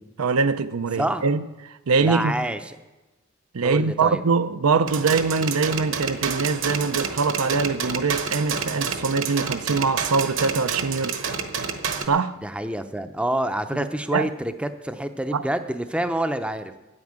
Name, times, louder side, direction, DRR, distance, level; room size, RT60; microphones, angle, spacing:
voice 1, 0.0-2.4 3.5-11.2 12.1-12.4 14.1-14.3 15.3-15.4, right 4 dB, 85° right, 0.6 m, -23 dB
voice 2, 2.0-2.6 3.6-4.2 12.4-16.7, right 1 dB, 5° right, 0.5 m, -27 dB
sound 1, 4.9-12.1, right 6 dB, 60° right, 1.1 m, -29 dB
9.6 x 9.5 x 8.8 m
head